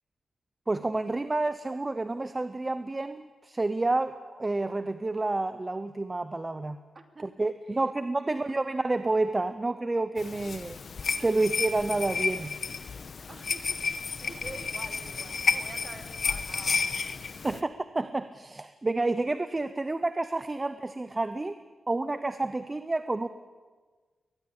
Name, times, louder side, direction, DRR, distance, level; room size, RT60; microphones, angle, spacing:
voice 1, 0.7-6.8 7.2-10.8 11.2-12.5 17.4-21.6 21.9-23.3, right 2 dB, 25° right, 11 dB, 0.8 m, -29 dB
voice 2, 6.9-7.3 7.7-7.9 8.2-8.4 11.2-11.3 13.3-16.8 17.3-17.5 18.0-18.1, right 3 dB, 40° right, 5 dB, 2.8 m, -47 dB
sound 1, 10.2-17.6, left 5 dB, 60° left, 1.1 m, -31 dB
22.5 x 20.0 x 8.8 m, 1.4 s
wide cardioid pair, 120°, 0 cm